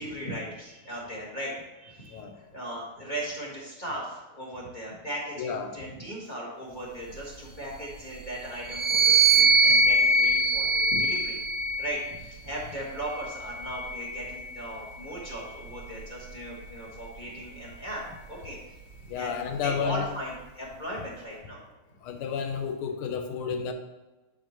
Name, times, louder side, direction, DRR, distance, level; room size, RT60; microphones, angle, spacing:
voice 1, 0.0-11.4 11.8-18.0 18.3-18.8 19.1-21.6, right 1 dB, 25° left, -4 dB, 1.5 m, -37 dB
voice 2, 5.4-5.8 19.1-20.1 22.0-23.7, left 6 dB, 85° left, 6 dB, 1.7 m, -31 dB
sound 1, 8.6-12.2 13.1-14.7, right 3 dB, 65° right, 1.4 m, -23 dB
9.2 x 4.9 x 3.0 m, 1.1 s
omnidirectional pair, 2.3 m